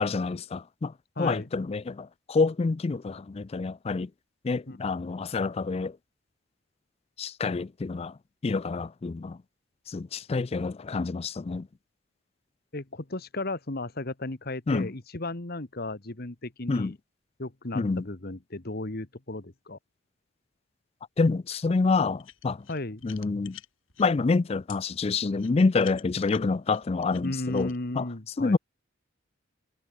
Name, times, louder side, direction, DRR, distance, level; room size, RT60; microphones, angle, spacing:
voice 1, 0.0-4.1 4.4-6.0 7.2-8.1 8.4-9.4 9.9-11.7 14.7-14.9 16.7-16.9 17.7-18.0 21.2-22.6 23.0-23.6 24.0-28.1 28.4-28.6, left 4 dB, 30° left, 0.4 m, -27 dB
voice 2, 1.2-1.5 4.7-4.8 12.7-16.9 17.4-19.8 22.7-23.0 27.2-28.6, left 2 dB, 50° left, 1.6 m, -35 dB
sound 1, 22.2-24.1 24.7-24.8 25.4-27.8, left 11 dB, 90° left, 7.4 m, -49 dB
head